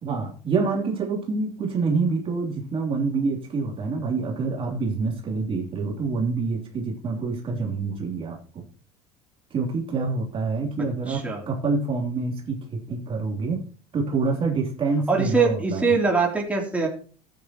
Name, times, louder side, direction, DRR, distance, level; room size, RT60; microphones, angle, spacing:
voice 1, 0.0-8.6 9.5-13.6 13.9-15.9, right 4 dB, 35° right, 1 dB, 3.2 m, -27 dB
voice 2, 11.1-11.4 15.1-16.9, right 4 dB, 10° right, -2 dB, 3.4 m, -22 dB
14.5 x 9.0 x 3.0 m, 0.40 s
supercardioid pair, 105°, 15 cm